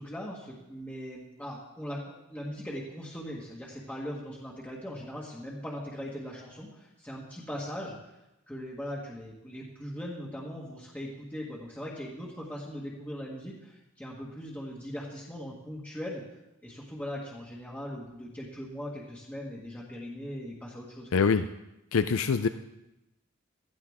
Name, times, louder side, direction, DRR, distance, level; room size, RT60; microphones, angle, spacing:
voice 1, 0.0-2.0 2.3-8.1 8.5-16.2 16.6-21.1, equal, 10° left, -4 dB, 1.6 m, -40 dB
voice 2, 21.1-21.5 21.9-22.5, left 5 dB, 75° left, 10 dB, 0.5 m, -24 dB
16.0 x 14.0 x 3.6 m, 0.93 s
head